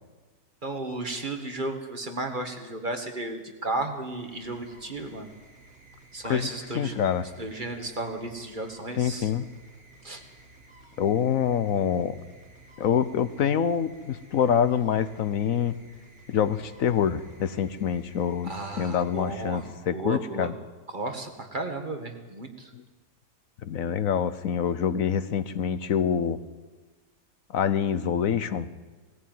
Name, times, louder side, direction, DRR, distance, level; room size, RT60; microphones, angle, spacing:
voice 1, 0.6-5.3 6.1-6.9 7.4-9.3 10.0-10.2 18.4-19.6 19.9-20.5 20.9-22.7, right 2 dB, 35° right, 5 dB, 2.0 m, -34 dB
sound 1, 3.8-20.3, right 2 dB, 50° right, 4.9 m, -54 dB
voice 2, 6.7-7.2 9.0-9.5 11.0-12.2 12.8-15.7 16.3-18.5 18.8-20.5 22.7-22.8 23.6-26.4 27.5-28.7, left 8 dB, 65° left, 14 dB, 1.2 m, -26 dB
19.0 x 14.5 x 9.3 m, 1.3 s
omnidirectional pair, 1.6 m